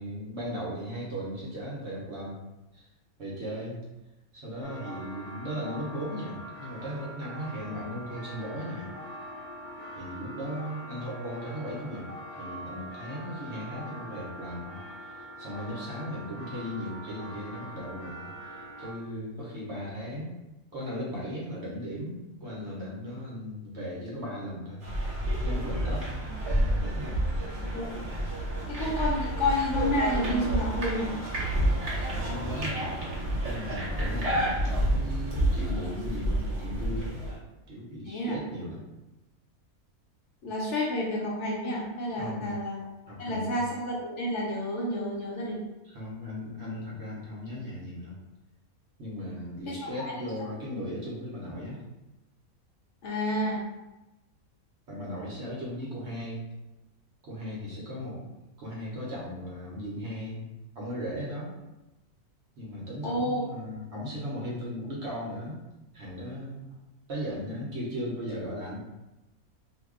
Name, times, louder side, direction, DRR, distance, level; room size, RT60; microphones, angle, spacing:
voice 1, 0.0-2.4 2.7-2.9 3.2-3.8 4.3-8.9 9.9-12.1 12.4-20.3 20.7-24.8 25.4-26.2 26.7-27.2 31.8-33.0 33.5-37.2 37.7-38.8 42.1-42.6 43.1-43.7 45.8-48.2 49.0-51.8 54.9-56.4 57.2-58.2 58.6-60.5 60.7-61.5 62.6-65.6 65.9-66.7 67.1-68.8, equal, 55° right, -5 dB, 1.0 m, -37 dB
sound 1, 4.6-18.9, equal, 85° left, 1.1 m, -43 dB
sound 2, 24.8-37.4, right 1 dB, 35° right, 0.6 m, -29 dB
voice 2, 28.7-31.1 38.1-38.4 40.4-42.8 43.2-45.6 49.7-50.1 53.0-53.6 63.0-63.5, left 1 dB, 65° left, -4 dB, 0.8 m, -30 dB
2.7 x 2.3 x 3.6 m, 1.0 s
omnidirectional pair, 1.5 m